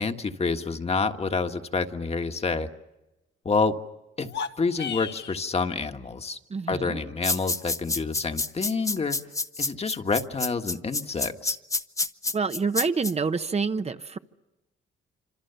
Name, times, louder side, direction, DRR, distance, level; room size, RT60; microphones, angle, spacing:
voice 1, 0.0-2.7 3.4-3.7 4.2-4.3 4.6-6.4 6.7-9.2 9.6-11.6, left 4 dB, 30° left, 7 dB, 1.6 m, -28 dB
sound 1, 4.2-5.4, left 7 dB, 60° left, 1.4 m, -34 dB
voice 2, 6.5-7.0 12.3-14.2, right 4 dB, 30° right, 9 dB, 1.0 m, -27 dB
sound 2, 7.2-13.1, left 3 dB, 15° left, 0.9 m, -28 dB
26.5 x 26.0 x 7.0 m, 1.0 s
cardioid pair, 90°, 20 cm